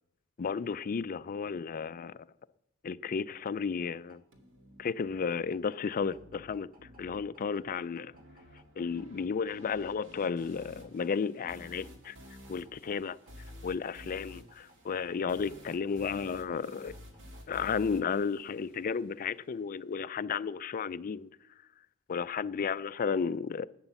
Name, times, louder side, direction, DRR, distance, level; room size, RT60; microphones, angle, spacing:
voice 1, 0.4-2.2 2.8-4.2 4.8-6.7 7.0-8.1 8.8-12.2 12.5-13.1 13.6-16.9 17.5-21.3 22.1-23.7, left 6 dB, 40° left, 0.4 m, -33 dB
sound 1, 3.4-19.4, right 1 dB, 40° right, 2.1 m, -64 dB
sound 2, 4.3-19.3, equal, 60° right, 2.0 m, -53 dB
11.5 x 8.9 x 7.0 m
head